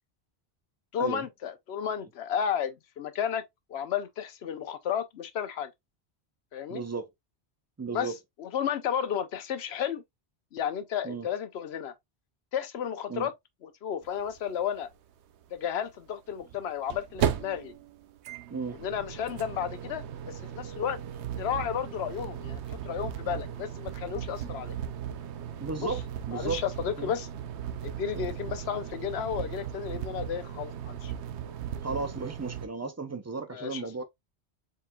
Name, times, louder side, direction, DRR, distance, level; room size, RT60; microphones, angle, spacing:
voice 1, 0.9-3.4 3.7-5.7 6.5-6.8 7.9-8.1 8.4-10.0 10.5-11.9 12.5-13.3 13.6-14.9 15.5-17.7 18.8-21.0 21.4-24.8 25.8-25.9 26.3-27.3 27.8-31.1 33.5-33.9, left 8 dB, 75° left, 0.9 m, -33 dB
voice 2, 6.7-7.1 7.8-8.2 11.0-11.3 13.1-13.3 18.5-18.8 24.4-24.5 25.6-26.0 26.3-26.6 27.0-27.1 28.1-28.3 31.8-34.0, right 4 dB, 25° right, 0.3 m, -34 dB
sound 1, 14.1-14.2 14.4-14.5 16.4-32.7, right 9 dB, 85° right, 0.9 m, -36 dB
4.3 x 3.8 x 2.3 m
omnidirectional pair, 1.1 m